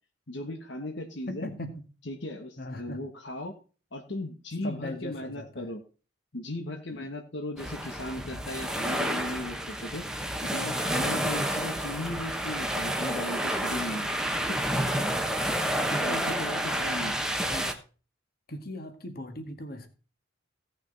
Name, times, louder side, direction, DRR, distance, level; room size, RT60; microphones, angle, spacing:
voice 1, 0.3-1.5 2.1-3.5 3.9-5.8 6.3-10.1 10.4-14.2 14.5-14.6 16.0-17.2, left 1 dB, 65° left, 3 dB, 1.4 m, -37 dB
voice 2, 1.3-1.8 2.6-3.0 4.6-5.7 6.9-7.1 11.1-11.3 15.9-16.8 17.4-17.8 18.5-19.9, left 1 dB, 50° left, 7 dB, 1.8 m, -39 dB
sound 1, 7.6-17.7, right 1 dB, 5° right, 1.1 m, -30 dB
16.5 x 6.3 x 4.1 m, 0.36 s
head